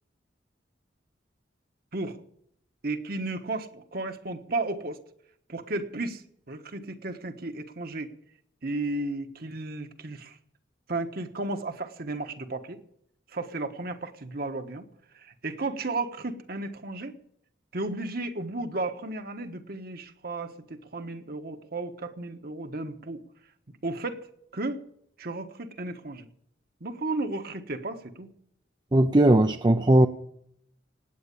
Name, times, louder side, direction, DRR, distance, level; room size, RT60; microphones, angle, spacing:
voice 1, 2.8-5.0 5.5-6.2 6.5-8.1 8.6-10.4 10.9-12.8 13.3-14.8 15.1-17.1 17.7-23.2 23.8-24.8 25.2-26.3 26.8-28.3, right 2 dB, 55° right, 6 dB, 1.3 m, -34 dB
voice 2, 28.9-30.1, right 1 dB, 25° right, 7 dB, 0.6 m, -18 dB
18.5 x 8.8 x 7.0 m, 0.70 s
head